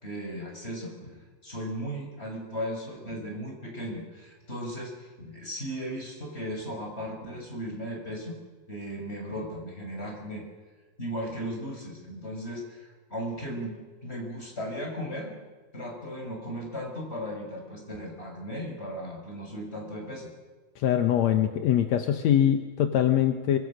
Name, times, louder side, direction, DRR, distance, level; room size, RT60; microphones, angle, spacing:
voice 1, 0.0-8.4 8.7-10.4 11.0-15.4 15.7-20.3, equal, 15° left, 1 dB, 6.1 m, -36 dB
voice 2, 20.8-23.6, left 10 dB, 70° left, 7 dB, 1.8 m, -23 dB
25.0 x 24.5 x 6.5 m, 1.4 s
omnidirectional pair, 4.4 m